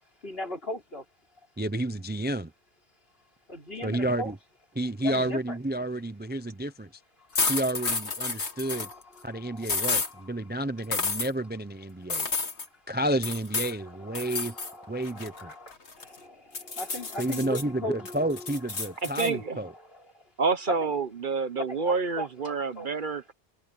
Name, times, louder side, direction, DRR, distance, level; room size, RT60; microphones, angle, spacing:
voice 1, 0.2-1.0 3.5-4.3 5.0-5.6 8.4-10.3 14.0-18.5 18.9-19.0 19.6-20.2 20.8-20.9 21.7-22.9, left 1 dB, 60° left, 5.3 m, -39 dB
voice 2, 1.6-2.5 3.8-4.4 4.8-6.9 7.5-8.9 9.2-12.3 12.9-14.6 14.9-15.5 17.2-19.7, right 1 dB, 10° right, 0.6 m, -30 dB
sound 1, 7.3-8.9 9.6-10.1 10.9-11.3 12.1-12.7 13.2-13.7 14.1-14.7 15.0-16.2 16.5-17.6 18.0-19.3, left 4 dB, 85° left, 2.4 m, -30 dB
voice 3, 19.0-19.6 20.4-23.3, right 4 dB, 50° right, 1.0 m, -28 dB
omnidirectional pair, 1.1 m